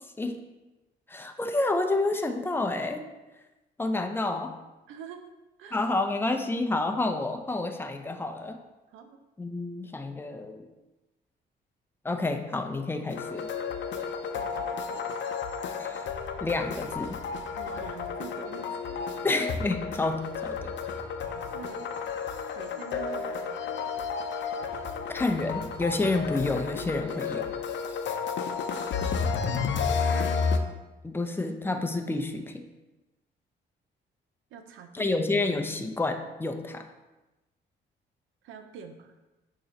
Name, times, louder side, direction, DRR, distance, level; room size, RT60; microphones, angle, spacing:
voice 1, 1.1-3.0 3.8-4.6 5.7-8.6 9.4-10.6 12.0-13.5 15.8-16.1 16.4-17.2 19.2-20.7 25.1-27.5 31.0-32.7 34.9-36.8, left 2 dB, 10° left, 6 dB, 0.6 m, -29 dB
voice 2, 4.9-5.3 5.6-5.9 8.9-9.2 14.3-15.0 17.5-19.4 21.1-21.9 22.6-23.8 29.1-29.9 34.5-35.1 38.4-39.1, right 6 dB, 90° right, 7 dB, 0.7 m, -46 dB
sound 1, 13.1-30.6, left 5 dB, 65° left, 0.6 m, -32 dB
6.9 x 3.0 x 5.1 m, 1.1 s
cardioid pair, 90°, 20 cm